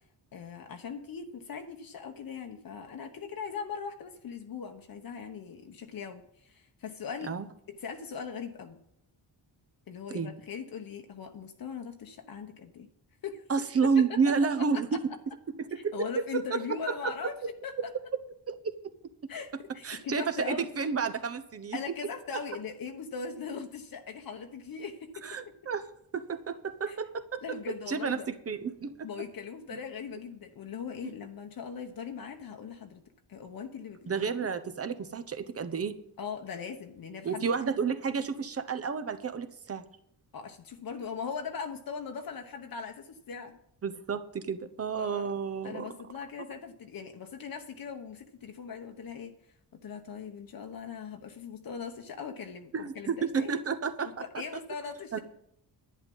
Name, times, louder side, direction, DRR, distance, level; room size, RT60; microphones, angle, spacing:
voice 1, 0.3-7.3 7.7-8.8 9.9-12.9 13.2-13.4 14.1-14.8 15.8-17.3 17.6-17.9 19.3-20.7 21.7-25.2 26.9-27.0 27.4-28.3 29.0-33.0 33.3-34.2 36.2-37.4 40.3-43.6 45.0-45.3 45.6-49.4 49.8-53.6 54.0-55.2, left 6 dB, 55° left, 5 dB, 1.2 m, -40 dB
voice 2, 13.5-15.0 15.5-16.8 17.0-17.1 17.8-17.9 18.5-18.7 19.8-21.8 25.2-25.9 26.1-27.4 27.9-28.9 29.7-29.8 34.1-35.9 37.2-39.8 43.8-45.9 52.7-54.2 55.1-55.2, right 5 dB, 35° right, 9 dB, 1.0 m, -30 dB
11.0 x 9.8 x 5.5 m, 0.71 s
wide cardioid pair, 150°, 42 cm